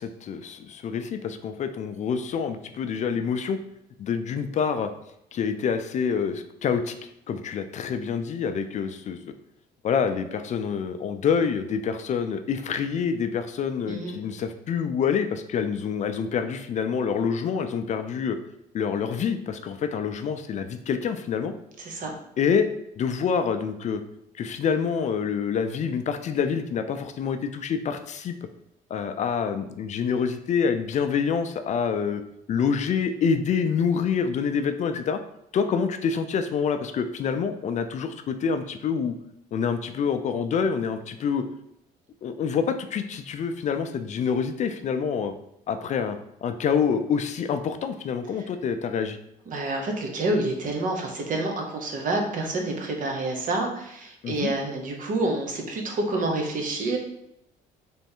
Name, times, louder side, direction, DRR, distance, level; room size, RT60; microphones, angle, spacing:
voice 1, 0.0-3.6 4.0-4.9 5.3-9.2 9.8-18.4 18.7-21.5 22.4-22.7 23.0-24.0 24.3-28.3 28.9-32.2 32.5-35.2 35.5-39.1 39.5-41.4 42.2-45.3 45.7-49.2 54.2-54.5, left 6 dB, 45° left, 8 dB, 0.4 m, -27 dB
voice 2, 13.9-14.2 21.8-22.1 49.5-57.0, right 2 dB, 50° right, 2 dB, 1.0 m, -28 dB
3.5 x 3.1 x 4.4 m, 0.79 s
cardioid pair, 110°, 17 cm